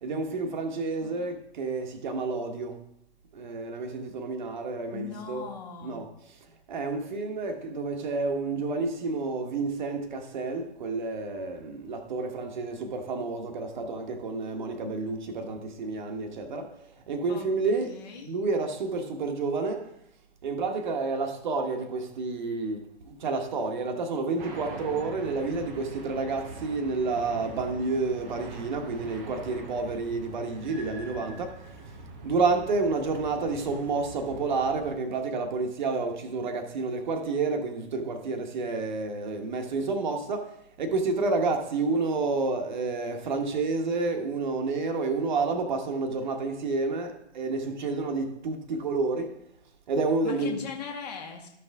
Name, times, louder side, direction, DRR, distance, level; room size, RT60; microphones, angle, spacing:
voice 1, 0.0-2.8 3.3-5.4 5.8-6.1 6.7-16.7 17.1-19.9 20.4-31.6 32.2-49.4 49.9-50.6, right 3 dB, 40° right, 1.3 m, -30 dB
voice 2, 4.9-6.0 17.3-17.5 17.9-18.3 50.2-51.5, left 6 dB, 35° left, 1.6 m, -39 dB
sound 1, 24.4-34.9, right 3 dB, 10° right, 0.5 m, -43 dB
13.0 x 5.9 x 3.6 m
figure-of-eight pair, 125°, 35 cm